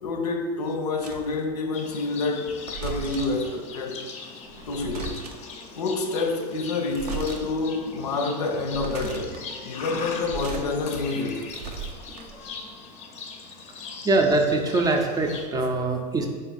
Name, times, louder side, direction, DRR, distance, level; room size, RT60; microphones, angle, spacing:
voice 1, 0.0-2.5 2.8-4.0 4.7-5.2 5.8-9.4 9.6-11.5, left 3 dB, 80° left, 0.5 m, -28 dB
sound 1, 1.0-1.4 2.5-3.4 4.5-5.5 6.9-7.4 7.9-8.0 8.6-9.4 10.1-10.7 11.1-12.5, right 6 dB, 75° right, 0.5 m, -36 dB
Livestock farm animals working animals, 1.7-15.4, left 4 dB, 35° left, 0.6 m, -40 dB
voice 2, 14.0-16.3, right 2 dB, 20° right, 0.4 m, -23 dB
3.7 x 2.6 x 4.0 m
hypercardioid pair, 90°, 20 cm